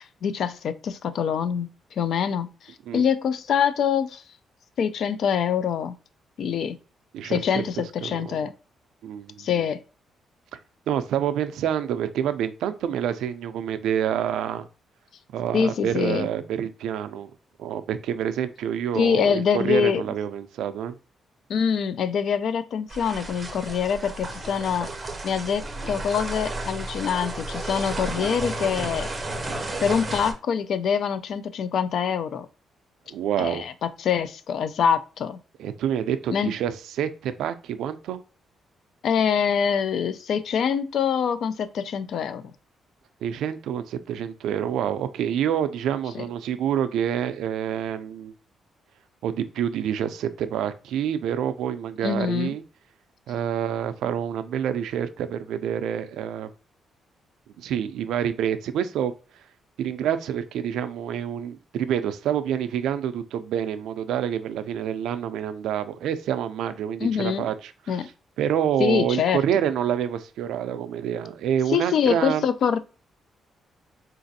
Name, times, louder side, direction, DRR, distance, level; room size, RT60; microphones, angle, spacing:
voice 1, 0.0-4.2 4.8-6.0 6.4-6.8 7.2-8.5 9.4-9.8 15.5-16.3 18.9-20.0 21.5-24.9 25.2-29.1 29.8-32.5 33.4-35.4 36.3-36.5 39.0-42.4 46.1-46.3 52.0-52.5 67.0-67.5 67.9-68.1 68.8-69.4 71.7-72.8, left 7 dB, 60° left, 13 dB, 0.3 m, -25 dB
voice 2, 7.1-7.6 8.0-8.4 9.0-9.6 10.9-14.7 15.3-17.3 17.6-21.0 33.1-33.7 35.6-38.2 43.2-48.3 49.2-52.6 53.3-56.5 57.6-59.1 59.8-68.0 68.4-72.4, right 9 dB, 90° right, 11 dB, 0.3 m, -27 dB
sound 1, 22.9-30.3, right 2 dB, 20° right, 0.5 m, -33 dB
3.9 x 2.5 x 2.6 m, 0.35 s
cardioid pair, 140°, 0 cm